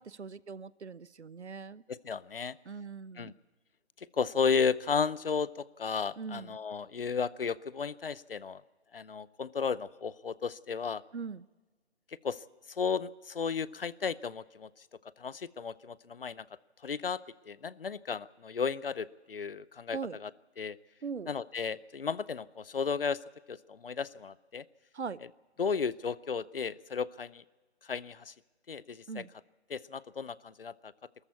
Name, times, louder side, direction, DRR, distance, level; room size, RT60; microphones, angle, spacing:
voice 1, 0.0-1.8 2.7-3.4 6.2-6.6 11.1-11.5 19.9-20.2 21.0-21.3 24.9-25.2 29.1-29.3, right 5 dB, 80° right, 20 dB, 0.7 m, -40 dB
voice 2, 1.9-2.6 3.2-3.3 4.0-8.6 8.9-11.0 12.2-14.9 15.2-16.4 16.8-20.3 20.6-20.8 21.3-23.2 23.5-24.6 25.6-27.4 27.8-28.3 28.7-29.2 29.7-30.9, left 6 dB, 55° left, 20 dB, 0.6 m, -34 dB
23.0 x 14.0 x 8.3 m, 1.2 s
figure-of-eight pair, 155°, 34 cm